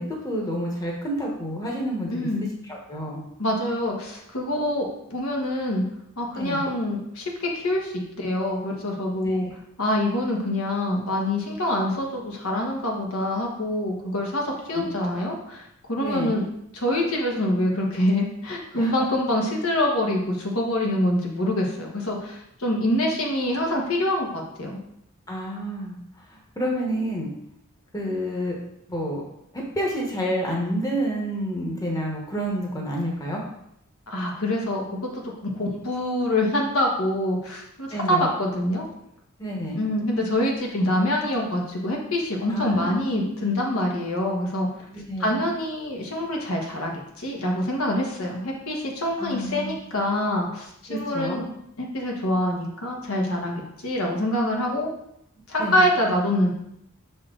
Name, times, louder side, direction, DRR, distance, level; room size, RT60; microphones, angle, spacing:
voice 1, 0.0-2.3 2.7-3.3 6.4-6.6 9.2-9.5 14.7-14.9 16.0-16.3 18.8-18.9 25.3-26.0 26.3-27.3 27.9-28.6 28.9-29.2 29.5-33.4 37.9-38.3 39.4-39.8 42.5-43.3 44.9-45.3 49.2-49.8 50.9-51.4 55.6-55.8, equal, 15° left, -2 dB, 1.1 m, -29 dB
voice 2, 2.1-2.5 3.4-5.8 6.2-9.5 9.8-15.6 15.9-16.4 16.7-24.8 34.1-35.2 35.5-38.8 39.7-44.7 45.2-51.5 51.8-54.9 55.5-56.5, left 1 dB, 75° left, -1 dB, 1.3 m, -25 dB
6.1 x 4.3 x 3.8 m, 0.75 s
head